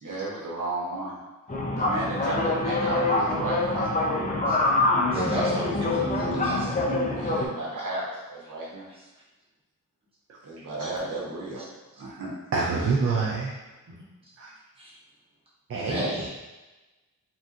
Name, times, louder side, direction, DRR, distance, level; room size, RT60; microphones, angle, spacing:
voice 1, 0.0-1.1 1.7-3.9 6.6-8.8 10.4-11.6 12.0-12.4 13.0-13.2, right 2 dB, 65° right, -5 dB, 0.9 m, -33 dB
sound 1, 1.5-7.5, left 2 dB, 25° left, 0.5 m, -25 dB
voice 2, 5.1-6.8 8.9-9.0 11.6-11.7 14.8-14.9 15.8-16.3, right 1 dB, 15° right, -9 dB, 1.0 m, -32 dB
voice 3, 12.5-13.5 14.4-14.5 15.7-16.1, right 4 dB, 45° right, -3 dB, 0.4 m, -26 dB
3.5 x 2.7 x 2.4 m, 1.1 s
wide cardioid pair, 130°, 34 cm